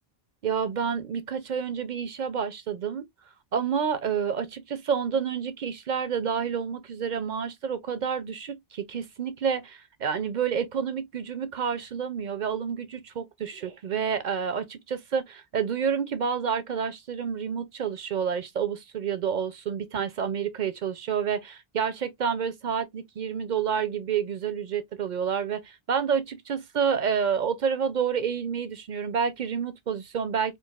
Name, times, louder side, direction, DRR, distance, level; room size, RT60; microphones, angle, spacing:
voice 1, 0.4-3.0 3.5-30.6, right 7 dB, 55° right, 0.6 m, -29 dB
4.5 x 2.4 x 2.3 m
omnidirectional pair, 1.0 m